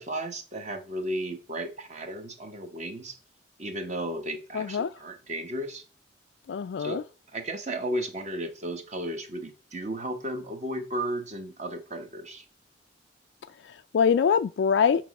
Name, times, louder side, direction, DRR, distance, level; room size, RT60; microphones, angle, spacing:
voice 1, 0.0-3.2 3.6-5.8 6.8-7.0 7.3-12.4, right 1 dB, 35° right, 1.1 m, -34 dB
voice 2, 4.5-4.9 6.5-7.0 13.6-15.1, left 6 dB, 70° left, 0.3 m, -24 dB
8.9 x 3.0 x 6.3 m
head